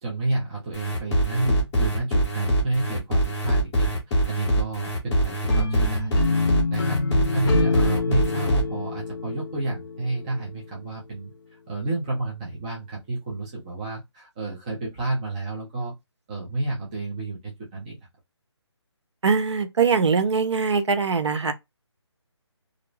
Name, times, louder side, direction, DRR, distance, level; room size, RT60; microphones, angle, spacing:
voice 1, 0.0-6.1 6.7-15.9 16.3-18.0, right 2 dB, 15° right, 0.5 m, -30 dB
sound 1, 0.7-8.6, right 1 dB, 10° left, 0.8 m, -23 dB
sound 2, 5.5-10.6, left 4 dB, 45° left, 0.6 m, -27 dB
voice 2, 19.2-21.5, right 5 dB, 70° right, 0.6 m, -22 dB
2.5 x 2.1 x 3.1 m
figure-of-eight pair, 160°, 15 cm